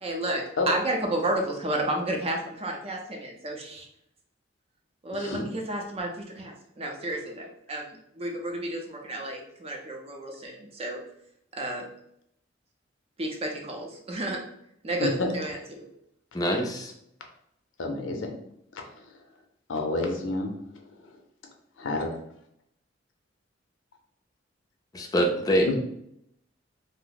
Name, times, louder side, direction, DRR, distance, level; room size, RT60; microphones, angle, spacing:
voice 1, 0.0-3.9 5.0-11.0 11.5-11.9 13.2-14.4 14.8-15.8, right 1 dB, 30° right, 1 dB, 0.5 m, -31 dB
voice 2, 5.1-5.5 15.0-15.3 17.8-18.3 18.7-19.2 19.7-21.2 21.8-22.1 25.7-25.8, left 3 dB, 85° left, 3 dB, 0.6 m, -30 dB
voice 3, 16.3-16.9 24.9-25.7, equal, 20° left, 1 dB, 0.4 m, -24 dB
2.7 x 2.0 x 3.9 m, 0.74 s
head